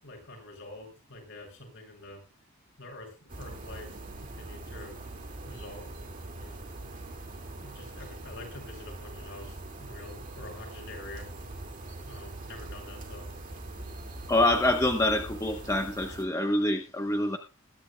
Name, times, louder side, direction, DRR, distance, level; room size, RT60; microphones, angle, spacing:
voice 1, 0.0-2.2 2.8-5.0 5.4-5.9 6.4-6.6 7.5-11.3 12.0-13.2, left 2 dB, 60° left, 0 dB, 6.7 m, -46 dB
sound 1, 3.3-16.2, right 2 dB, 40° right, 2.2 m, -42 dB
voice 2, 14.3-17.4, left 1 dB, 15° left, 5 dB, 0.8 m, -26 dB
21.5 x 11.5 x 2.3 m, 0.27 s
head